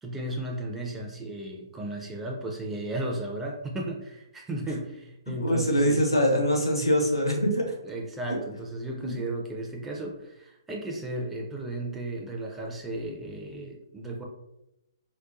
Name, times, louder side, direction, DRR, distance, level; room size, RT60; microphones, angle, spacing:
voice 1, 0.0-6.3 7.8-14.2, right 1 dB, 10° right, -1 dB, 0.4 m, -35 dB
voice 2, 5.4-7.6 9.0-9.1, equal, 85° left, 1 dB, 0.8 m, -23 dB
4.0 x 2.2 x 2.4 m, 0.87 s
figure-of-eight pair, 125°, 2 cm